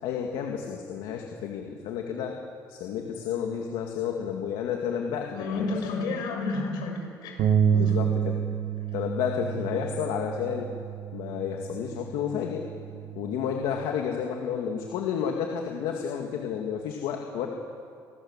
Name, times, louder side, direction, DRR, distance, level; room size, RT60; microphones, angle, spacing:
voice 1, 0.0-2.4 2.7-5.7 7.7-8.4 8.9-10.7 11.1-12.6 13.1-17.5, left 8 dB, 85° left, 2 dB, 2.2 m, -31 dB
voice 2, 5.4-7.4 7.7-7.9, left 3 dB, 70° left, 2 dB, 6.7 m, -31 dB
Bass guitar, 7.4-13.6, right 8 dB, 65° right, 1.8 m, -29 dB
28.5 x 19.0 x 7.4 m, 2.3 s
cardioid pair, 165°, 8 cm